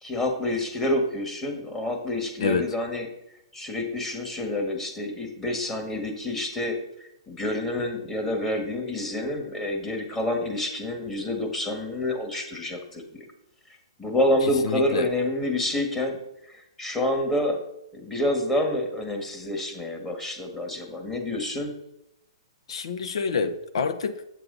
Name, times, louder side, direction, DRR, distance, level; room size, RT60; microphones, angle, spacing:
voice 1, 0.0-3.1 3.5-6.8 7.3-13.2 14.0-16.2 16.4-17.6 17.9-21.7, left 1 dB, 10° left, 1.7 m, -28 dB
voice 2, 14.6-15.1 22.7-24.2, left 5 dB, 70° left, 0.9 m, -27 dB
8.2 x 7.5 x 4.0 m
hypercardioid pair, 135°, 3 cm